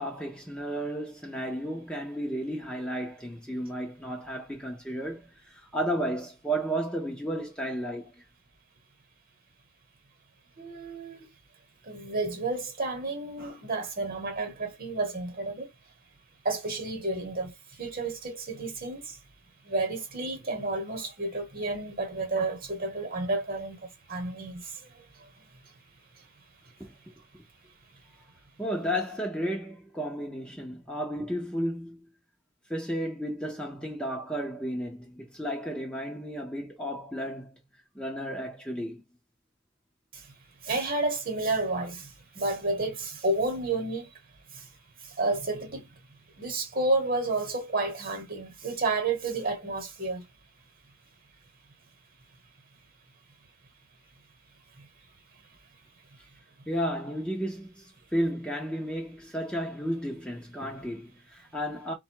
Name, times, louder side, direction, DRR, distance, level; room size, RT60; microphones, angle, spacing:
voice 1, 0.0-8.1 26.8-26.9 27.3-27.4 28.6-32.1 32.7-37.6 37.9-39.0 56.7-61.9, equal, 5° left, 0.7 m, -33 dB
voice 2, 10.6-11.3 11.9-15.7 16.4-19.2 19.6-25.3 40.1-40.3 40.6-44.1 44.5-44.7 45.0-45.9 46.4-50.3 54.8-54.9, right 2 dB, 40° right, 1.2 m, -31 dB
4.2 x 2.3 x 4.6 m
head